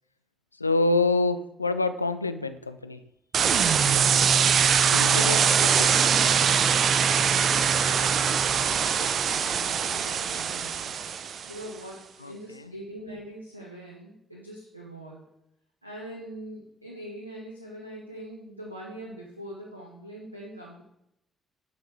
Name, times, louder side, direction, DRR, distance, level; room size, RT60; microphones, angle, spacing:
voice 1, 0.6-3.0 4.9-5.9 12.2-12.3, left 3 dB, 85° left, 11 dB, 0.3 m, -26 dB
sound 1, 3.3-11.6, right 7 dB, 50° right, 0.6 m, -22 dB
voice 2, 4.9-5.5 7.3-11.0 11.5-15.3 15.8-20.8, right 1 dB, 90° right, -2 dB, 0.9 m, -42 dB
10.5 x 6.0 x 4.7 m, 0.81 s
figure-of-eight pair, 40°, 0 cm